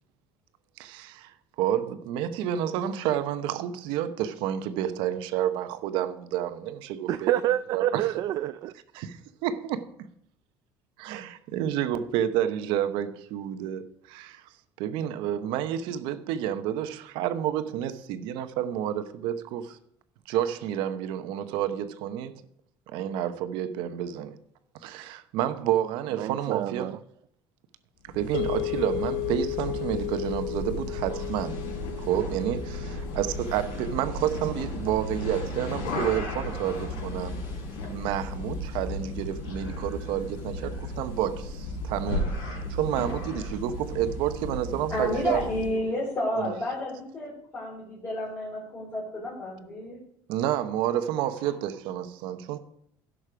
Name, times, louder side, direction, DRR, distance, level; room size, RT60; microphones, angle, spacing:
voice 1, 0.8-7.3 7.7-8.1 8.9-10.1 11.0-14.4 14.8-19.8 20.3-22.3 22.9-24.4 24.8-26.9 28.1-31.6 32.0-37.4 37.9-45.4 46.4-46.6 50.3-52.6, right 10 dB, 70° right, 1.0 m, -30 dB
voice 2, 7.1-8.7 26.2-27.0, right 13 dB, 45° right, 0.4 m, -27 dB
sound 1, 28.1-45.8, left 1 dB, 70° left, 5.2 m, -35 dB
sound 2, 28.3-36.6, left 18 dB, 90° left, 0.4 m, -36 dB
voice 3, 44.9-50.0, left 1 dB, 25° left, 3.5 m, -31 dB
16.0 x 6.3 x 5.0 m
cardioid pair, 175°, 9 cm